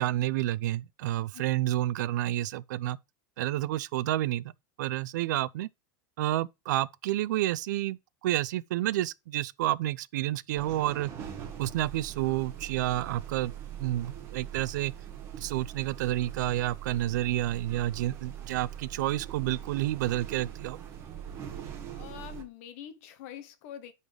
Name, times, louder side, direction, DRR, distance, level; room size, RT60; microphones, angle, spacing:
voice 1, 0.0-3.0 3.4-4.5 4.8-5.7 6.2-11.1 11.6-13.5 13.8-14.9 15.4-20.8, right 15 dB, 65° right, 0.5 m, -30 dB
sound 1, 10.5-22.4, right 10 dB, 25° right, 1.4 m, -42 dB
voice 2, 21.9-23.9, left 10 dB, 45° left, 1.0 m, -45 dB
9.9 x 4.0 x 3.3 m
supercardioid pair, 175°, 10 cm